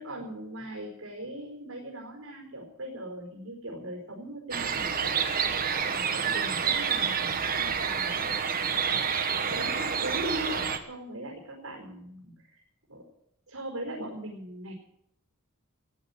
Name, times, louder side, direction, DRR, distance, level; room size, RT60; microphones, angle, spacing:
voice 1, 0.0-5.2 5.9-8.4 9.5-12.6 12.9-13.0 13.5-14.7, right 1 dB, 80° right, -2 dB, 4.6 m, -40 dB
sound 1, 4.5-10.8, right 6 dB, 45° right, 1.4 m, -28 dB
15.5 x 10.0 x 8.5 m, 0.74 s
head